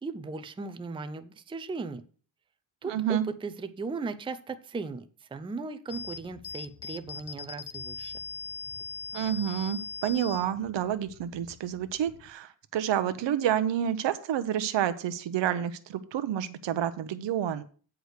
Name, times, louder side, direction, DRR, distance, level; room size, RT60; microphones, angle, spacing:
voice 1, 0.0-2.0 2.8-8.1, right 4 dB, 10° right, 8 dB, 0.4 m, -37 dB
voice 2, 2.8-3.2 9.1-17.6, right 10 dB, 75° right, 11 dB, 0.8 m, -29 dB
sound 1, 5.9-12.3, left 5 dB, 60° left, 0.8 m, -41 dB
8.2 x 4.9 x 6.4 m, 0.41 s
wide cardioid pair, 150°, 44 cm